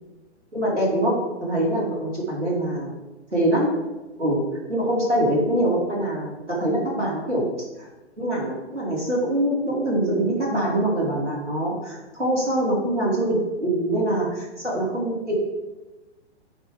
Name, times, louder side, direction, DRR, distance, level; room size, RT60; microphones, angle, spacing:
voice 1, 0.5-2.9 3.3-3.7 4.2-4.4 4.7-7.5 7.8-7.9 8.2-15.3, right 1 dB, 85° right, -5 dB, 2.5 m, -24 dB
8.5 x 5.2 x 3.4 m, 1.1 s
figure-of-eight pair, 115°, 35 cm